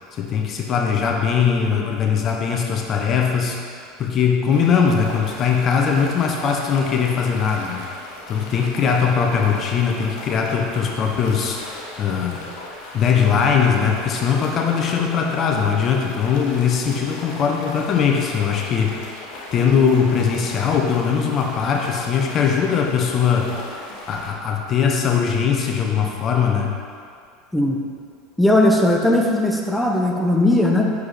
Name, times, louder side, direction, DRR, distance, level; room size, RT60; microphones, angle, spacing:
voice 1, 0.1-3.6 4.0-7.8 8.3-11.6 12.0-12.4 12.9-19.0 19.5-23.5 24.1-26.7, left 6 dB, 40° left, 1 dB, 0.7 m, -20 dB
sound 1, 4.5-24.3, left 2 dB, 60° left, 1.2 m, -38 dB
voice 2, 28.4-30.9, left 1 dB, 5° left, 0 dB, 0.8 m, -18 dB
6.4 x 4.8 x 4.1 m, 2.3 s
hypercardioid pair, 80°, 0 cm